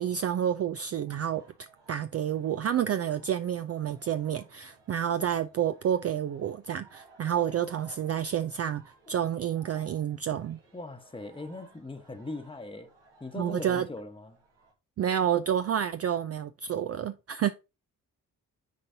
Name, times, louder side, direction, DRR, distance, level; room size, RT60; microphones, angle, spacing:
voice 1, 0.0-8.8 9.1-10.6 13.3-13.9 15.0-17.5, right 9 dB, 35° right, 0.4 m, -29 dB
sound 1, 1.1-14.7, right 3 dB, 75° right, 1.8 m, -59 dB
voice 2, 10.7-12.9 13.2-14.4, left 2 dB, 10° left, 1.1 m, -40 dB
10.5 x 4.0 x 2.7 m
hypercardioid pair, 40°, 42 cm